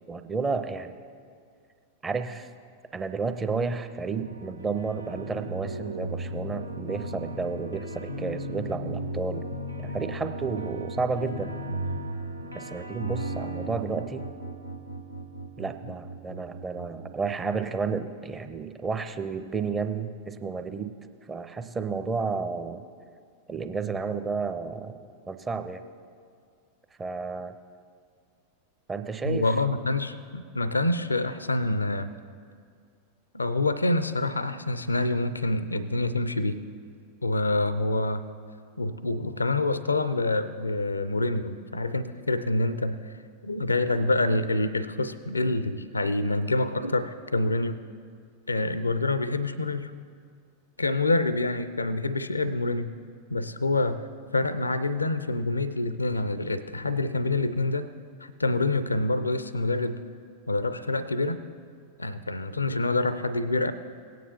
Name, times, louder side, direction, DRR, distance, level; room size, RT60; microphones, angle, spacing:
voice 1, 0.1-0.9 2.0-2.5 2.9-9.5 9.8-11.6 12.5-14.3 15.6-20.9 21.3-22.8 23.5-25.0 25.3-25.8 27.0-27.5 28.9-29.5, right 4 dB, 15° right, 9 dB, 0.6 m, -31 dB
sound 1, 3.9-17.3, right 1 dB, 85° right, 0.7 m, -36 dB
voice 2, 29.2-32.1 33.3-36.6 37.2-38.2 38.8-43.1 43.4-47.8 48.5-49.9 50.8-52.9 53.3-54.0 54.3-57.9 58.2-60.0 60.5-61.4 62.0-63.7, left 2 dB, 80° left, 13 dB, 0.4 m, -26 dB
18.0 x 9.2 x 2.8 m, 2.2 s
figure-of-eight pair, 90°, 0 cm